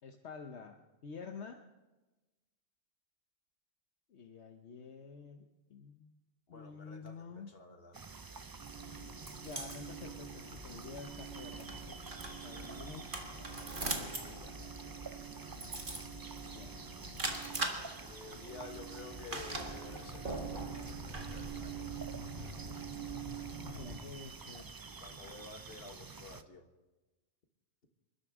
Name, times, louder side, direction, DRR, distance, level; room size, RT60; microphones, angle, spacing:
voice 1, 0.0-1.6 4.1-5.4 5.7-6.1 6.5-7.5 9.4-11.8 12.3-13.2 13.8-14.3 16.5-16.7 23.7-24.7, left 5 dB, 75° left, 4 dB, 1.2 m, -49 dB
voice 2, 6.5-7.2 7.5-8.0 13.5-15.5 18.0-20.6 21.1-22.0 22.4-22.6 25.0-26.6, left 4 dB, 60° left, 4 dB, 1.8 m, -52 dB
sound 1, 7.9-26.4, right 4 dB, 35° right, 0.4 m, -49 dB
sound 2, 8.6-24.0, right 3 dB, 50° right, 2.0 m, -42 dB
27.5 x 12.5 x 3.7 m, 1.1 s
omnidirectional pair, 1.1 m